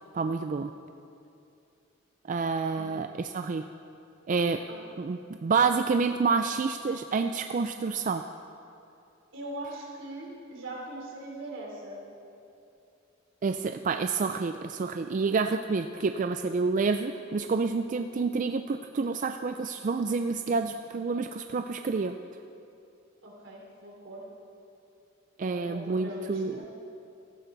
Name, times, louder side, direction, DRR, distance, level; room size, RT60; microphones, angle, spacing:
voice 1, 0.1-0.7 2.3-3.7 4.3-4.6 5.0-8.2 13.4-22.1 25.4-26.6, right 4 dB, 40° right, 7 dB, 0.4 m, -28 dB
voice 2, 9.3-12.0 23.2-24.2 25.4-26.7, right 1 dB, 80° right, -3 dB, 3.5 m, -41 dB
16.5 x 13.5 x 4.0 m, 2.6 s
head